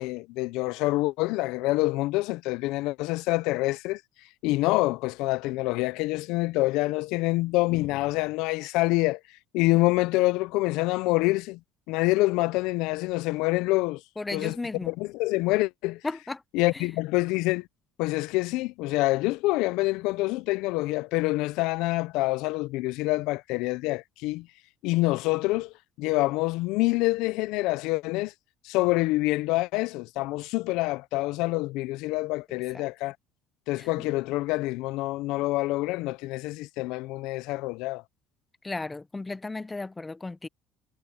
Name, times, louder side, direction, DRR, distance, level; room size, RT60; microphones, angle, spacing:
voice 1, 0.0-4.0 4.4-9.2 9.5-11.6 11.9-14.0 14.3-16.0 16.5-17.7 18.0-24.5 24.8-28.3 28.6-33.2 33.7-38.0, left 20 dB, 75° left, 0.5 m, -26 dB
voice 2, 14.2-14.9 16.0-16.4 16.7-16.9 32.7-32.8 33.8-34.1 38.6-40.5, left 3 dB, 15° left, 0.6 m, -35 dB
supercardioid pair, 90°, 0 cm